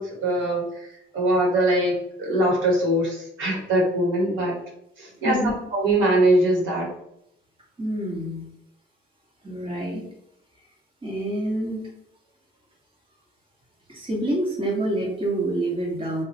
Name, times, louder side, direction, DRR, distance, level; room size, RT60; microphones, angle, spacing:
voice 1, 0.0-4.5 5.0-5.4 5.7-6.9, right 1 dB, 80° right, -2 dB, 1.3 m, -22 dB
voice 2, 7.8-8.5 9.4-10.1 11.0-11.9 13.9-16.2, right 1 dB, 25° right, -3 dB, 1.3 m, -27 dB
2.9 x 2.4 x 3.9 m, 0.77 s
cardioid pair, 90°, 20 cm